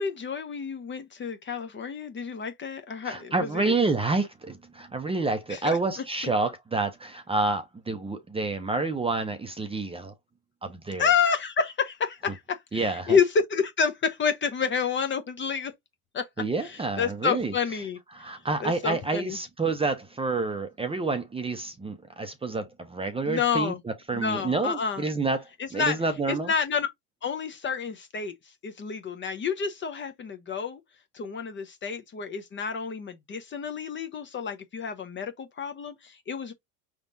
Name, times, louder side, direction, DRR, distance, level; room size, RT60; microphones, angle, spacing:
voice 1, 0.0-3.7 5.5-5.8 11.0-15.7 16.1-16.3 16.6-18.0 18.6-19.4 23.3-23.8 24.1-25.0 25.6-26.0 26.3-26.9 27.2-28.3 28.6-30.8 31.1-36.5, left 6 dB, 25° left, 0.7 m, -29 dB
voice 2, 3.0-10.1 10.6-11.1 12.7-13.2 16.4-17.5 18.1-26.5, right 3 dB, 10° right, 0.7 m, -29 dB
5.0 x 3.6 x 2.7 m
supercardioid pair, 110°, 45 cm